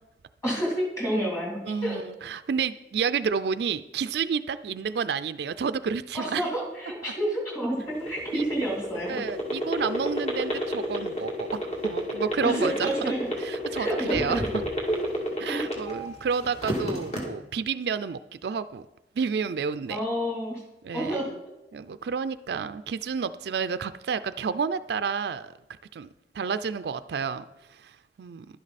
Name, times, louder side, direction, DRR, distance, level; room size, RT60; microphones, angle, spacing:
voice 1, 0.4-2.0 6.1-9.2 12.4-13.2 13.7-14.5 15.3-15.6 19.9-20.6 20.9-21.3, right 1 dB, 15° left, -3 dB, 3.1 m, -29 dB
voice 2, 1.7-6.4 8.3-8.4 9.1-12.9 13.4-14.4 15.4-18.8 19.2-20.0 20.8-21.2 21.7-25.5 25.9-26.1 26.3-27.5 27.8-27.9 28.2-28.5, right 6 dB, 65° right, 13 dB, 0.4 m, -30 dB
sound 1, 7.8-16.1 16.4-17.2, right 1 dB, 40° left, 2.2 m, -28 dB
11.5 x 10.5 x 4.1 m, 0.99 s
head